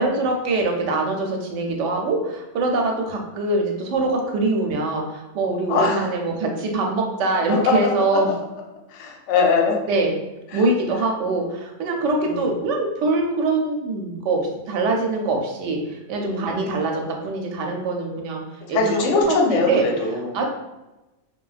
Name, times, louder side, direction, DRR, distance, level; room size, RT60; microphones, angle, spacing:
voice 1, 0.0-8.3 9.9-10.1 10.5-14.4 14.7-18.4 18.7-19.9 20.3-20.4, right 3 dB, 70° right, 2 dB, 0.8 m, -23 dB
voice 2, 5.7-6.1 8.9-9.8 10.5-10.7 12.2-12.5 16.2-16.6 18.7-20.4, left 4 dB, 65° left, 0 dB, 0.8 m, -22 dB
3.1 x 2.2 x 2.3 m, 1.0 s
omnidirectional pair, 1.5 m